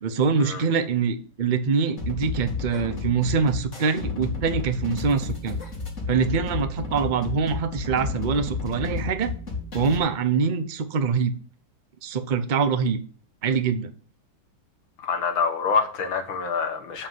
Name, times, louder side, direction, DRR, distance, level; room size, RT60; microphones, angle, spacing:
voice 1, 0.0-5.5 6.1-9.3 9.7-11.3 12.0-13.0 13.4-13.9, right 5 dB, 80° right, 0.4 m, -24 dB
sound 1, 2.0-10.0, left 4 dB, 35° left, 2.9 m, -32 dB
voice 2, 15.0-17.1, left 5 dB, 75° left, 2.2 m, -26 dB
8.4 x 5.5 x 7.5 m
omnidirectional pair, 2.2 m